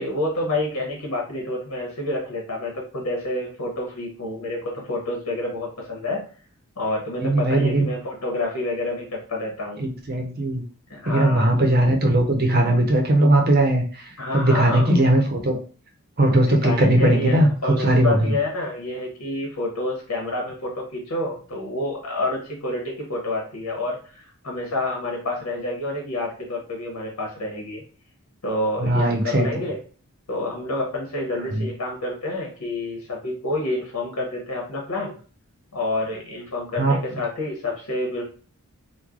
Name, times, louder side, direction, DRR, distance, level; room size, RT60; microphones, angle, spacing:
voice 1, 0.0-6.2 6.8-9.8 10.9-11.5 14.2-14.9 16.3-27.8 28.4-29.8 30.3-35.2 35.7-38.2, left 2 dB, 85° left, 0 dB, 1.0 m, -28 dB
voice 2, 7.2-7.9 9.8-10.6 11.1-15.6 16.2-18.3 28.8-29.5 31.5-31.7 36.8-36.9, right 1 dB, 45° right, 2 dB, 0.7 m, -19 dB
3.0 x 2.2 x 3.7 m, 0.40 s
head